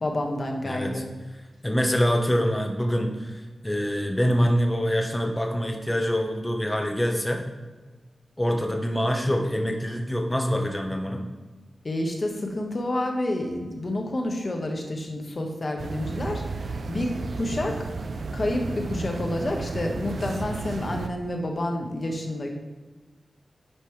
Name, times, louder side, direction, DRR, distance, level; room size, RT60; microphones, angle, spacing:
voice 1, 0.0-1.1 11.8-16.4 16.9-17.9 18.3-22.5, left 1 dB, 40° left, 2 dB, 1.3 m, -29 dB
voice 2, 0.6-1.0 1.6-7.4 8.4-11.3, equal, 10° left, 2 dB, 1.1 m, -25 dB
sound 1, 15.8-21.1, right 3 dB, 65° right, 0.5 m, -33 dB
10.0 x 5.3 x 3.3 m, 1.3 s
wide cardioid pair, 115°, 0 cm